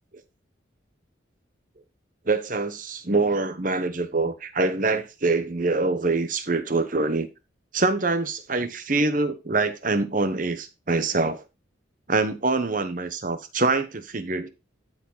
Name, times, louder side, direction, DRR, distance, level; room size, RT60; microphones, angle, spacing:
voice 1, 2.2-7.3 7.7-11.4 12.1-14.5, right 3 dB, 45° right, 1.0 m, -25 dB
12.5 x 4.9 x 3.9 m
head